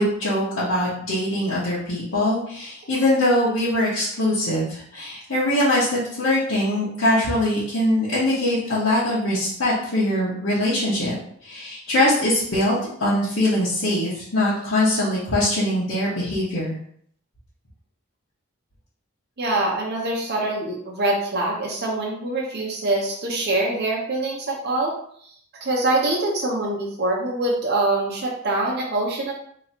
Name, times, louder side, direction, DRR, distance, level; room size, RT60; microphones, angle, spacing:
voice 1, 0.0-11.1 11.4-16.7, left 1 dB, 70° left, -11 dB, 1.2 m, -22 dB
voice 2, 19.4-24.9 25.2-25.3 25.6-29.3, right 2 dB, 55° right, -2 dB, 0.8 m, -24 dB
3.1 x 2.9 x 4.2 m, 0.64 s
head